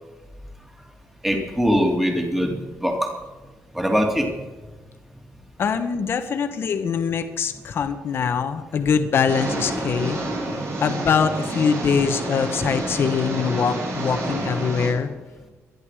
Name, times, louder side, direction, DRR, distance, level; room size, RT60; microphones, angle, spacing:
voice 1, 1.2-3.2 3.7-4.4, equal, 5° right, 1 dB, 2.7 m, -22 dB
voice 2, 5.6-10.2 10.8-15.1, left 6 dB, 50° left, 8 dB, 1.2 m, -23 dB
sound 1, 9.3-14.9, right 2 dB, 55° right, 7.3 m, -29 dB
24.0 x 11.0 x 4.9 m, 1.2 s
wide cardioid pair, 165°, 5 cm